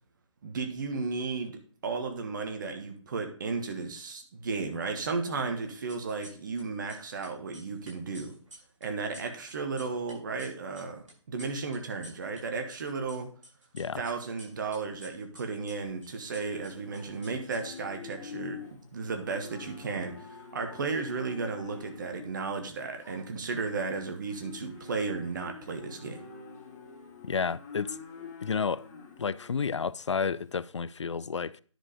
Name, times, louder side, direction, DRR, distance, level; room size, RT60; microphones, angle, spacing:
voice 1, 0.4-8.3 8.8-13.3 14.0-26.2, right 4 dB, 40° right, 1.5 m, -34 dB
sound 1, 5.7-6.6 6.9-12.4 12.7-14.1 14.4-18.1, equal, 75° right, 5.4 m, -52 dB
Livestock farm animals working animals, 15.8-30.5, left 6 dB, 30° left, 2.5 m, -47 dB
voice 2, 27.2-28.0 28.4-28.9 29.2-31.6, left 5 dB, 65° left, 0.4 m, -31 dB
10.0 x 4.8 x 5.0 m
figure-of-eight pair, 145°, 16 cm